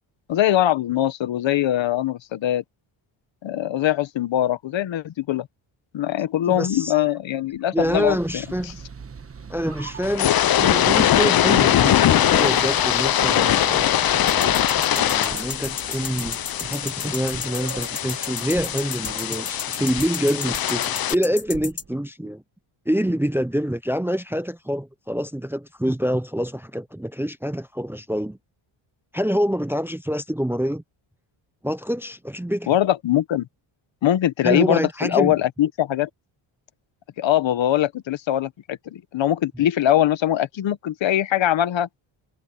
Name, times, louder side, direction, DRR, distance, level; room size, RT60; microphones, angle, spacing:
voice 1, 0.3-2.6 3.4-5.5 5.9-8.2 32.7-33.5 34.0-36.1 37.2-41.9, left 12 dB, 65° left, 1.4 m, -22 dB
voice 2, 6.5-6.9 7.7-8.8 9.5-14.0 14.9-22.4 22.9-28.4 29.1-30.8 31.6-32.7 34.4-35.4, equal, 5° right, 0.6 m, -26 dB
sound 1, 7.8-22.0, right 5 dB, 25° right, 1.4 m, -39 dB
sound 2, 10.0-21.1, left 11 dB, 45° left, 0.7 m, -21 dB
sound 3, 14.3-21.8, left 5 dB, 30° left, 2.0 m, -32 dB
cardioid pair, 110°, 50 cm